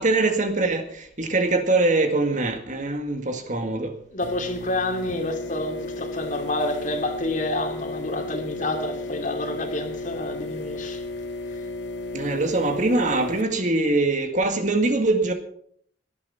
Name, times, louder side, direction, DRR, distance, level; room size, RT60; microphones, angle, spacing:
voice 1, 0.0-3.9 12.1-15.3, right 2 dB, 45° right, 2.0 m, -23 dB
voice 2, 4.1-11.0, left 1 dB, 45° left, 2.6 m, -28 dB
sound 1, 4.2-13.4, left 2 dB, 80° left, 2.2 m, -34 dB
17.5 x 11.5 x 5.8 m
head